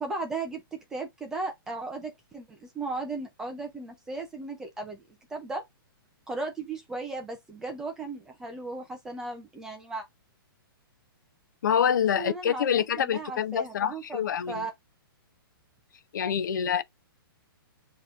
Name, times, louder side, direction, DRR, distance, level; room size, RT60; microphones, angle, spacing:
voice 1, 0.0-5.0 5.3-5.6 6.3-10.0 12.1-14.7, right 3 dB, 5° right, 0.4 m, -36 dB
voice 2, 11.6-14.7 16.1-16.8, left 8 dB, 55° left, 0.5 m, -26 dB
7.2 x 2.9 x 2.4 m
hypercardioid pair, 175°, 12 cm